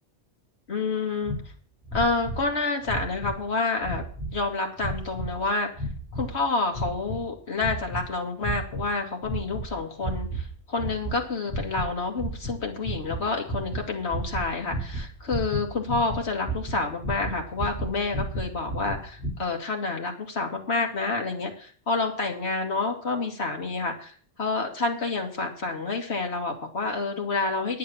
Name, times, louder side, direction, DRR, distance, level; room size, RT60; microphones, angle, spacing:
voice 1, 0.7-1.3 1.9-4.0 4.3-5.7 6.1-27.8, left 3 dB, 70° left, 1 dB, 2.5 m, -28 dB
sound 1, 1.2-1.4 1.8-2.5 2.8-3.4 3.8-4.4 4.8-5.3 5.7-6.3 6.7-7.2 7.6-8.0 8.4-8.9 9.2-9.7 10.0-10.5 10.8-11.2 11.4-11.9 12.2-19.3, right 2 dB, ahead, 6.8 m, -33 dB
10.0 x 9.9 x 7.1 m, 0.44 s
omnidirectional pair, 1.1 m